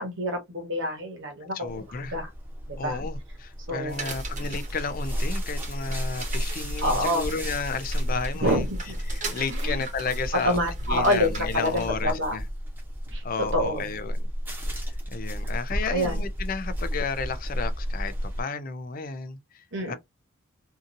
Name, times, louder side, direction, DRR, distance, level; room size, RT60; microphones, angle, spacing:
voice 1, 0.0-2.3 2.7-3.0 3.7-4.1 6.8-7.3 8.4-9.0 9.5-9.8 10.4-12.4 13.1-13.9 15.9-16.2 19.7-20.0, equal, 55° right, 1.0 m, -27 dB
voice 2, 1.4-2.1 2.8-8.6 9.1-10.6 10.9-12.4 13.2-14.3 14.8-19.9, left 5 dB, 40° left, 0.4 m, -33 dB
sound 1, 1.7-18.4, equal, 10° right, 0.9 m, -32 dB
sound 2, 3.9-11.9, right 2 dB, 35° right, 0.9 m, -38 dB
2.8 x 2.5 x 2.5 m
head